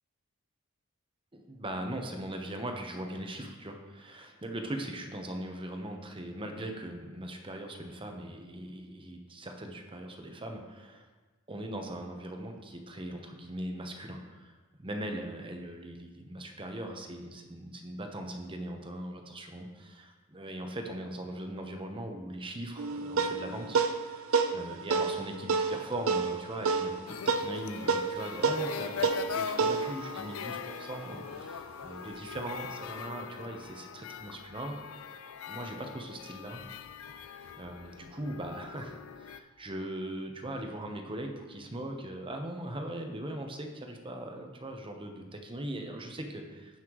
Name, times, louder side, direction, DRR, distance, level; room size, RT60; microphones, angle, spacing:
voice 1, 1.3-11.1 11.5-14.5 14.8-34.8 35.5-36.6 37.6-46.8, right 1 dB, 25° right, 3 dB, 0.9 m, -40 dB
sound 1, 22.8-31.5, right 4 dB, 70° right, 0.6 m, -31 dB
sound 2, 27.1-39.4, left 7 dB, 80° left, 0.5 m, -41 dB
16.0 x 5.7 x 3.1 m, 1.3 s
head